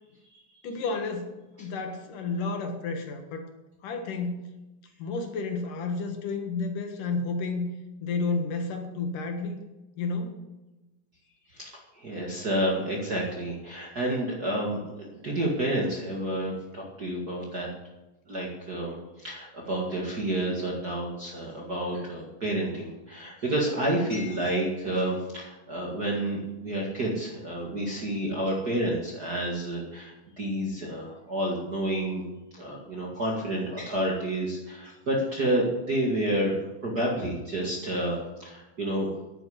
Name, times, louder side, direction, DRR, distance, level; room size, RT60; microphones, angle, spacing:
voice 1, 0.6-3.5 3.8-4.5 5.0-7.7 8.0-9.6 10.0-10.4, left 3 dB, 75° left, 5 dB, 3.1 m, -31 dB
voice 2, 11.5-17.7 18.3-32.2 32.5-39.1, right 1 dB, 35° right, -2 dB, 2.0 m, -30 dB
10.5 x 9.2 x 7.9 m, 1.1 s
omnidirectional pair, 3.8 m